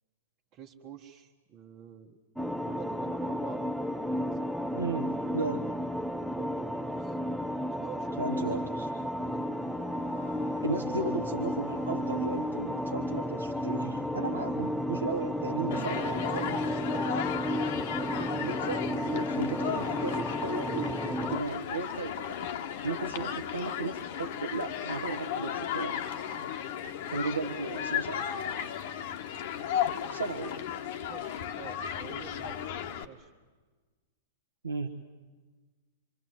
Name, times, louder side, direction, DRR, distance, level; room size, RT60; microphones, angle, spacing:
voice 1, 0.5-2.2 2.6-4.0 4.3-5.1 6.3-7.2 7.7-8.7 9.2-9.5 15.1-18.1 23.2-23.4 27.4-27.9 30.0-30.2 31.1-32.6 33.0-33.3, right 8 dB, 40° right, -1 dB, 1.5 m, -48 dB
sound 1, 2.4-21.4, equal, ahead, 0.7 m, -32 dB
voice 2, 4.7-5.1 5.3-5.7 8.2-8.9 10.6-16.6 18.4-22.5 22.8-26.0 27.1-28.3 30.1-30.7 34.6-34.9, right 3 dB, 80° right, 3 dB, 1.2 m, -35 dB
sound 2, 9.2-24.3, left 5 dB, 80° left, 1.3 m, -51 dB
Human group actions, 15.7-33.0, left 9 dB, 55° left, 1.3 m, -35 dB
28.0 x 24.0 x 8.0 m, 1.4 s
figure-of-eight pair, 100°, 0 cm